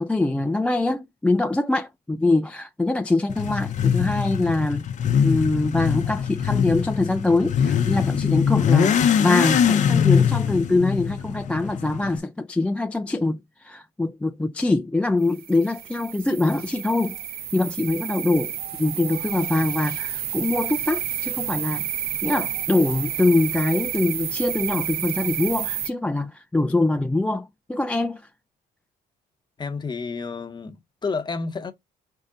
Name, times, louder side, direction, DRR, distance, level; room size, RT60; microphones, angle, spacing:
voice 1, 0.0-4.9 5.2-17.2 17.5-21.9 22.2-28.2, left 2 dB, 5° left, 0.3 m, -23 dB
Motorcycle / Accelerating revving vroom, 3.3-12.2, left 8 dB, 45° left, 0.6 m, -22 dB
sound 1, 15.3-25.9, right 10 dB, 65° right, 0.8 m, -30 dB
voice 2, 29.6-31.7, left 4 dB, 25° left, 0.9 m, -30 dB
5.0 x 2.7 x 3.7 m
cardioid pair, 110°, 17 cm